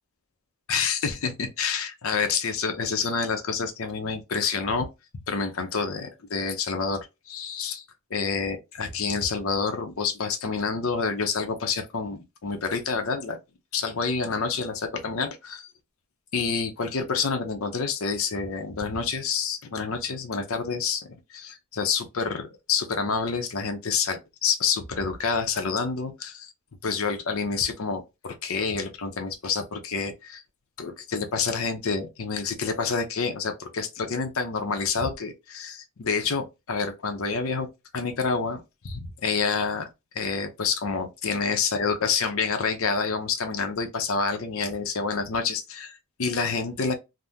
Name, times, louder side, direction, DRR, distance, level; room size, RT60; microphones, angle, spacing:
voice 1, 0.7-4.9 5.3-13.4 13.7-15.7 16.3-26.5 26.8-30.4 30.8-39.9 40.1-46.9, left 5 dB, 65° left, 0.6 m, -28 dB
3.5 x 2.0 x 2.6 m
head